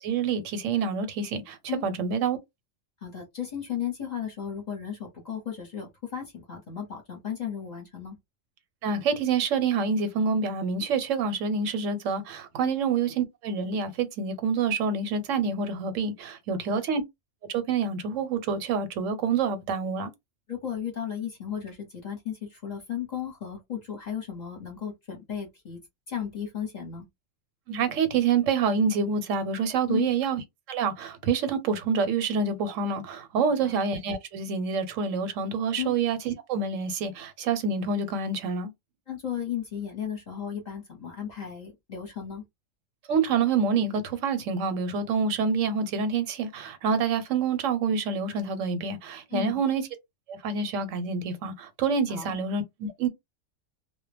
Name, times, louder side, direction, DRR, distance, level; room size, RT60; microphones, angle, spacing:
voice 1, 0.0-1.6 1.8-2.4 8.8-17.0 17.5-20.1 27.7-30.4 30.7-38.7 43.1-49.9 50.3-53.1, right 5 dB, 80° right, 1.0 m, -27 dB
voice 2, 3.0-8.2 12.6-12.8 16.7-16.8 20.5-25.8 26.1-27.1 29.9-30.2 33.6-33.8 35.8-35.9 39.1-42.4 49.3-49.6 52.1-52.4, left 9 dB, 40° left, 0.8 m, -35 dB
2.1 x 2.1 x 3.2 m
omnidirectional pair, 1.3 m